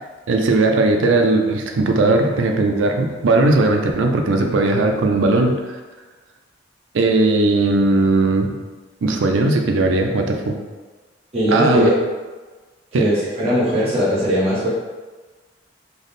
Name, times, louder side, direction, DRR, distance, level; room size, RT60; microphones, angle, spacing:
voice 1, 0.3-5.8 6.9-8.6 9.0-10.6 11.5-11.9 12.9-13.1, right 2 dB, 90° right, 3 dB, 0.4 m, -17 dB
voice 2, 11.3-11.9 13.0-14.7, equal, 35° right, -10 dB, 0.9 m, -19 dB
3.4 x 2.1 x 3.9 m, 1.3 s
head